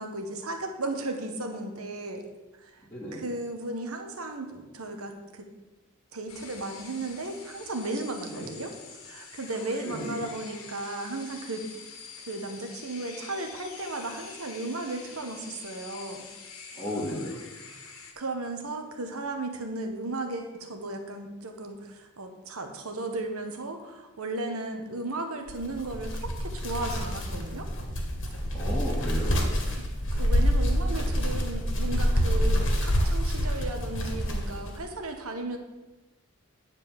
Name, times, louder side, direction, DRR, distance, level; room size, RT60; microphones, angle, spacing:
voice 1, 0.0-2.2 2.5-2.9 3.1-5.4 6.1-8.7 9.0-11.7 12.2-16.3 17.8-27.7 29.8-29.9 30.1-35.6, right 2 dB, 80° right, 4 dB, 1.3 m, -35 dB
voice 2, 2.9-3.3 8.3-8.5 9.8-10.2 16.7-17.4 28.5-29.5, equal, 10° left, -7 dB, 1.9 m, -34 dB
sound 1, 6.3-18.1, left 5 dB, 75° left, 1.5 m, -46 dB
sound 2, 25.5-34.7, equal, 55° left, 1.7 m, -27 dB
10.0 x 4.5 x 7.3 m, 1.1 s
head